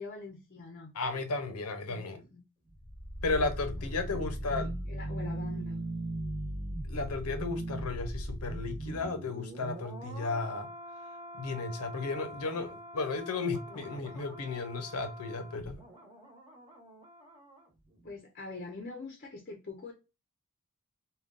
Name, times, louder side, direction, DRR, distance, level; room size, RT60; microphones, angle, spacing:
voice 1, 0.0-0.9 1.9-2.4 3.7-5.8 13.7-13.9 18.0-19.9, left 3 dB, 40° left, 0.6 m, -44 dB
voice 2, 0.9-2.2 3.2-4.7 6.9-10.7 11.3-15.8, left 3 dB, 85° left, 0.7 m, -34 dB
sound 1, 2.7-17.7 17.9-18.1, right 1 dB, 25° right, 1.1 m, -40 dB
3.6 x 2.3 x 2.3 m
head